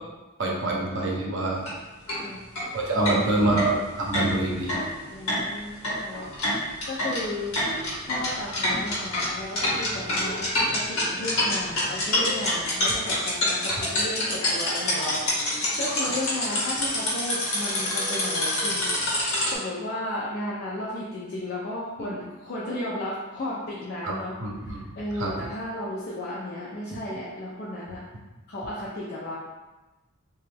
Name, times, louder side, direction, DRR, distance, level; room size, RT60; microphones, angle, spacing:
voice 1, 0.4-1.6 2.7-4.7 24.0-24.1 24.4-24.8 25.2-25.3, right 2 dB, 60° right, -2 dB, 0.6 m, -25 dB
sound 1, 1.6-1.7 2.1-2.2 2.6-2.7 3.0-19.5, left 1 dB, 75° left, 1.0 m, -27 dB
voice 2, 3.0-3.5 5.1-6.3 6.5-7.5 8.1-28.0 28.5-29.4, left 1 dB, 45° left, -7 dB, 0.5 m, -34 dB
3.0 x 2.3 x 3.3 m, 1.1 s
head